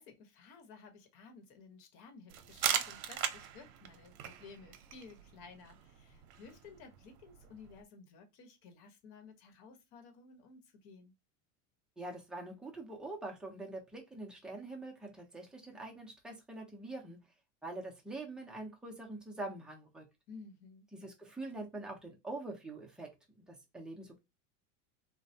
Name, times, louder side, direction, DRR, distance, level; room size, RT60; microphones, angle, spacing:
voice 1, 0.0-11.1 20.3-20.9, left 4 dB, 50° left, 1.0 m, -55 dB
sound 1, 2.3-7.8, right 9 dB, 75° right, 0.7 m, -40 dB
voice 2, 12.0-17.2 17.6-20.1 20.9-24.2, right 2 dB, ahead, 0.5 m, -44 dB
3.2 x 2.2 x 2.6 m
supercardioid pair, 135°, 43 cm